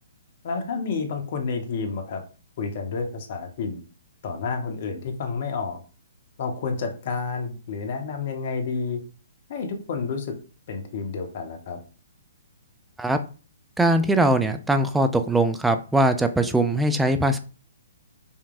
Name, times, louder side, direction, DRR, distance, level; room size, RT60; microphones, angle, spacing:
voice 1, 0.4-2.2 2.6-3.8 4.2-5.8 6.4-9.0 9.5-10.3 10.7-11.8, left 4 dB, 45° left, 5 dB, 1.0 m, -30 dB
voice 2, 13.8-17.4, right 1 dB, 5° right, 8 dB, 0.4 m, -21 dB
5.4 x 3.3 x 2.4 m, 0.36 s
figure-of-eight pair, 125°, 0 cm